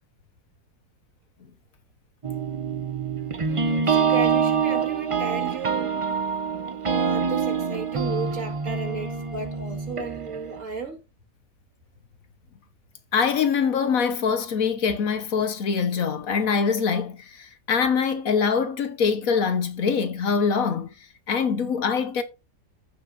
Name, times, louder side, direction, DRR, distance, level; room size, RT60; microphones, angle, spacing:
sound 1, 2.2-10.6, right 6 dB, 35° right, 0.5 m, -26 dB
voice 1, 3.5-6.0 6.9-11.0, right 4 dB, 55° right, 2.2 m, -34 dB
voice 2, 13.1-20.9 21.3-22.2, left 6 dB, 60° left, 1.3 m, -24 dB
15.0 x 6.1 x 2.5 m
omnidirectional pair, 1.7 m